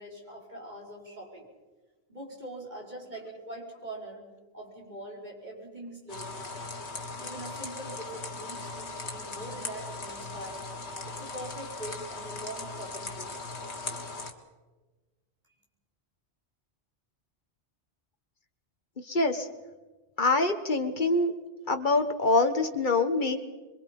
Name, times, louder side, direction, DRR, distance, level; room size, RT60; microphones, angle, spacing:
voice 1, 0.0-1.5 2.1-4.3 4.5-6.7 7.2-10.6 11.0-13.3, right 1 dB, 40° right, -2 dB, 5.4 m, -43 dB
sound 1, 6.1-14.3, left 3 dB, 80° left, 2.2 m, -39 dB
voice 2, 19.1-19.5 20.2-21.3 21.7-23.4, left 3 dB, 45° left, 7 dB, 1.6 m, -25 dB
26.0 x 23.5 x 5.4 m, 1.2 s
omnidirectional pair, 1.1 m